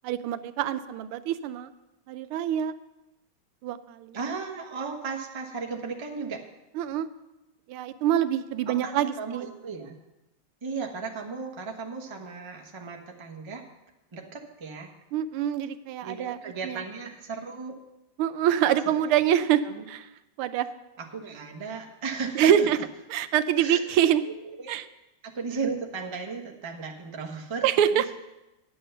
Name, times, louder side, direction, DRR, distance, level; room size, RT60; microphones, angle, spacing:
voice 1, 0.0-1.7 2.1-2.7 3.6-4.2 6.8-7.1 7.7-9.5 15.1-16.4 16.6-16.8 18.2-19.6 19.9-20.1 20.4-20.7 22.4-22.8 23.1-24.2 24.7-24.8 27.6-28.0, right 10 dB, 85° right, 12 dB, 1.5 m, -25 dB
voice 2, 4.1-6.4 8.7-10.0 10.6-13.6 14.1-14.9 16.0-17.8 19.0-19.1 19.6-19.8 21.0-22.8 23.6-23.8 24.2-24.7 25.2-28.1, right 5 dB, 20° right, 1 dB, 0.7 m, -35 dB
10.0 x 7.9 x 6.8 m, 0.95 s
omnidirectional pair, 2.4 m